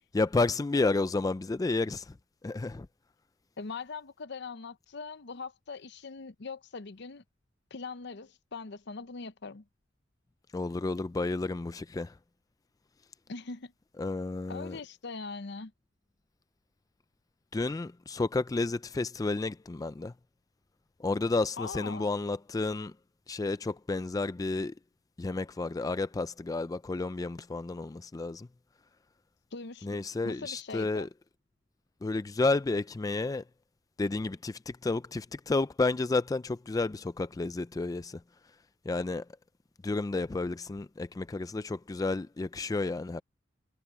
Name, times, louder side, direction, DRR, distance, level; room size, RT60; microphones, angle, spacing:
voice 1, 0.1-2.2 2.4-2.9 10.5-12.2 14.0-14.8 17.5-20.1 21.0-23.0 23.3-24.8 25.2-28.5 29.8-31.1 32.0-33.4 34.0-38.2 38.8-39.3 39.8-43.2, left 3 dB, 20° left, 0.3 m, -31 dB
voice 2, 3.6-7.2 7.7-9.6 13.3-13.7 14.5-15.7 21.6-22.1 29.5-31.1, left 4 dB, 65° left, 0.8 m, -41 dB
head